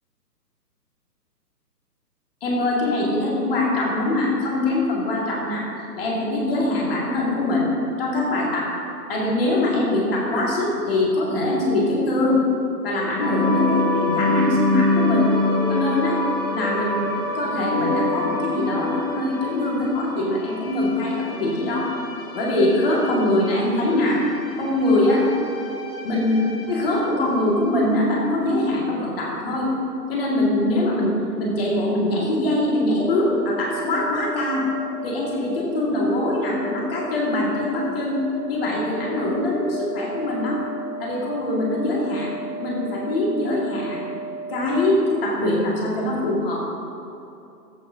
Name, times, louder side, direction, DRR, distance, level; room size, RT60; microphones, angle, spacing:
voice 1, 2.4-5.7 6.0-7.7 8.0-8.8 9.1-12.4 12.8-15.3 15.7-16.2 16.5-21.9 22.3-24.2 24.6-25.3 26.0-26.4 26.7-29.7 30.1-34.6 35.0-38.2 38.5-40.6 41.0-44.1 44.5-46.7, left 1 dB, 35° left, -4 dB, 2.0 m, -23 dB
sound 1, 13.2-27.7, left 2 dB, 15° left, 0.6 m, -27 dB
sound 2, 33.0-44.7, right 3 dB, 30° right, 1.8 m, -34 dB
15.0 x 8.5 x 2.7 m, 2.8 s
figure-of-eight pair, 145°, 50 cm